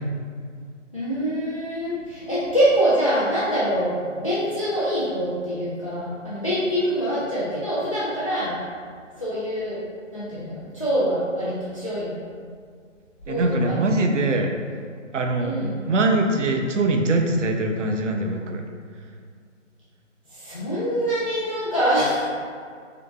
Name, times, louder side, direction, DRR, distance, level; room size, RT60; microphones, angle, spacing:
voice 1, 0.9-8.5 9.2-9.8 10.1-12.1 13.3-14.0 15.4-15.8 20.3-22.3, equal, 25° left, -10 dB, 0.5 m, -25 dB
voice 2, 13.3-14.5 15.1-18.6, right 2 dB, 70° right, 3 dB, 0.6 m, -22 dB
3.8 x 3.4 x 3.4 m, 2.1 s
figure-of-eight pair, 160°, 38 cm